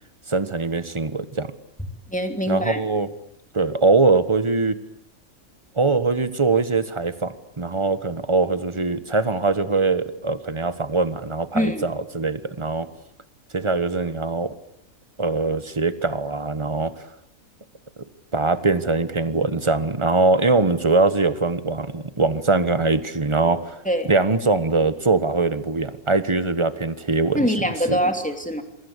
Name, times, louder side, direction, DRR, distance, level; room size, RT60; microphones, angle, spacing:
voice 1, 0.3-1.5 2.5-3.1 3.5-4.8 5.7-12.9 13.5-14.5 15.2-17.0 18.3-23.8 24.1-27.5 27.9-28.0, right 3 dB, 20° right, 12 dB, 1.4 m, -22 dB
voice 2, 2.1-2.8 11.5-11.9 23.8-24.1 27.3-28.6, equal, 5° left, 5 dB, 2.9 m, -23 dB
28.0 x 23.0 x 8.3 m, 0.79 s
omnidirectional pair, 1.4 m